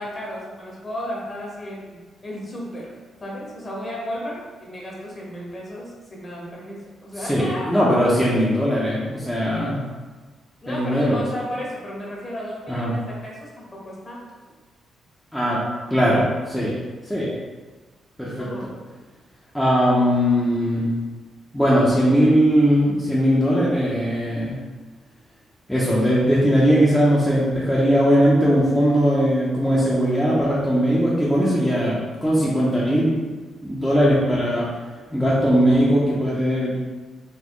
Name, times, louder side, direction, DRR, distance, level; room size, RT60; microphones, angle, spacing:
voice 1, 0.0-2.9 3.2-7.9 8.1-8.3 10.6-14.3 18.4-18.7, equal, 30° left, -4 dB, 1.2 m, -34 dB
voice 2, 7.3-9.8 10.7-11.2 12.7-12.9 15.3-15.6 15.9-16.7 17.1-17.3 18.2-18.5 19.5-20.9 21.5-24.5 25.7-33.3 33.6-34.7 35.1-36.8, equal, 5° left, -8 dB, 0.7 m, -19 dB
4.2 x 3.0 x 3.0 m, 1.3 s
cardioid pair, 120°, 0 cm